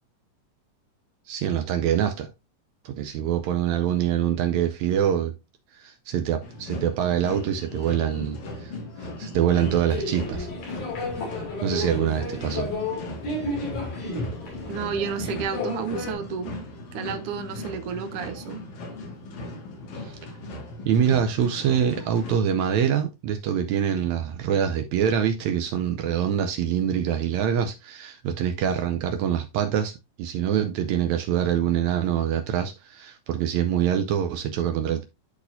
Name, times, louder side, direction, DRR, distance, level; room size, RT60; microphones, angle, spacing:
voice 1, 1.3-2.3 2.9-5.3 5.7-8.7 9.0-10.5 11.6-12.7 20.0-20.2 20.9-29.9 30.2-35.0, right 9 dB, 90° right, 1.6 m, -25 dB
sound 1, 6.4-22.4, left 2 dB, 80° left, 3.6 m, -38 dB
sound 2, 9.5-16.1, left 2 dB, 60° left, 4.0 m, -32 dB
voice 2, 14.7-16.5 16.9-18.6, right 7 dB, 70° right, 1.4 m, -31 dB
12.0 x 4.2 x 2.6 m
omnidirectional pair, 3.9 m